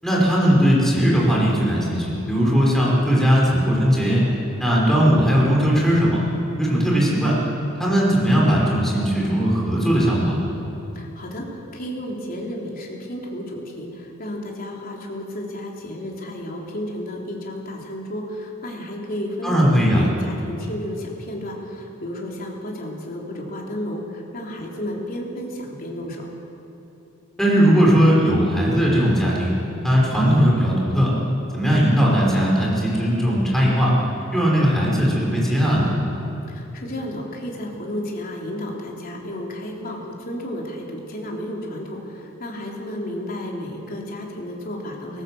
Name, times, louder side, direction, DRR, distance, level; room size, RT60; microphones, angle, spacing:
voice 1, 0.0-4.2 4.6-6.2 6.6-7.4 7.8-10.4 19.4-20.0 27.4-29.5 29.8-31.1 31.5-33.9 34.3-35.9, equal, ahead, -4 dB, 5.4 m, -18 dB
voice 2, 11.0-26.2 36.5-45.2, left 1 dB, 45° left, -1 dB, 3.5 m, -32 dB
19.5 x 17.0 x 7.8 m, 3.0 s
head